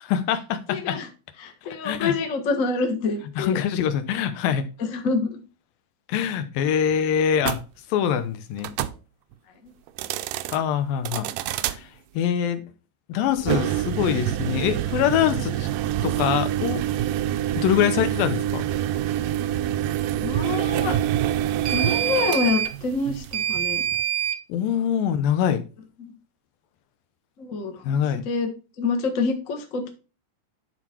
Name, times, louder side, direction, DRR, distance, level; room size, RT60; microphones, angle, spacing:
voice 1, 0.1-1.0 1.8-2.1 3.4-4.7 6.1-7.6 7.9-8.8 10.5-11.3 11.7-11.9 12.1-12.6 13.1-15.7 16.0-16.8 17.5-18.6 24.5-25.6 27.8-28.2, left 9 dB, 90° left, 10 dB, 2.7 m, -24 dB
voice 2, 0.7-1.1 1.4-3.6 4.9-5.4 20.2-21.0 21.7-23.8 26.0-26.1 27.4-28.5 28.8-29.9, left 4 dB, 45° left, 4 dB, 1.0 m, -27 dB
sound 1, 7.4-7.6 8.6-9.0 9.9-10.6 11.1-11.8 13.4-24.4, right 12 dB, 80° right, 2.1 m, -26 dB
11.0 x 4.1 x 4.4 m, 0.32 s
omnidirectional pair, 4.0 m